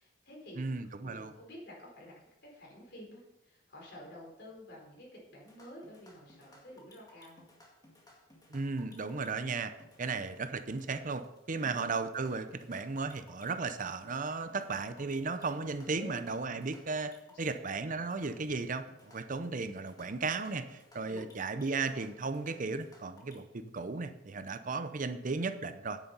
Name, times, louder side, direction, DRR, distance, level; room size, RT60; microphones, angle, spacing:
voice 1, 0.0-0.7 1.0-7.5 11.6-11.8 15.9-16.3 17.2-17.6 21.1-21.3, equal, 60° left, -2 dB, 4.6 m, -50 dB
voice 2, 0.6-1.3 8.5-9.7 10.0-26.0, right 4 dB, 45° right, 10 dB, 0.7 m, -35 dB
sound 1, 5.4-23.4, left 1 dB, 20° left, 2.1 m, -60 dB
9.6 x 9.0 x 5.6 m, 0.92 s
head